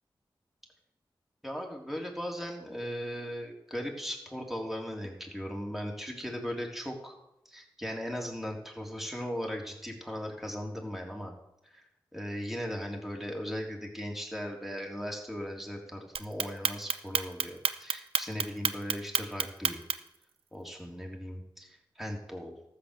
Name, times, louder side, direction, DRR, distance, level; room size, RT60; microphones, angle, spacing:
voice 1, 1.4-7.1 7.5-11.3 11.6-11.9 12.1-19.8 20.5-22.6, equal, 5° right, 0 dB, 3.6 m, -38 dB
Clock, 16.2-20.2, right 6 dB, 90° right, 0.6 m, -29 dB
13.5 x 8.4 x 6.9 m, 0.83 s
cardioid pair, 40°, 9 cm